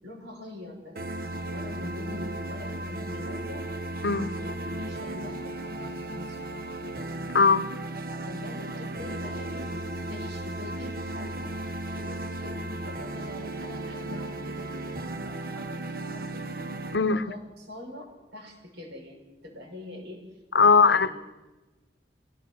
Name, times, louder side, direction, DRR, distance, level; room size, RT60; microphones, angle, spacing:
voice 1, 0.0-3.7 4.2-6.5 8.3-9.7 10.1-11.5 11.9-16.5 17.0-18.1 18.3-20.2 20.6-21.2, left 2 dB, 80° right, 0 dB, 6.1 m, -44 dB
sound 1, 1.0-17.0, right 1 dB, 55° right, 1.1 m, -35 dB
voice 2, 7.3-7.7 16.9-17.3 20.5-21.1, left 5 dB, 80° left, 14 dB, 0.9 m, -20 dB
25.5 x 17.0 x 6.4 m, 1.1 s
head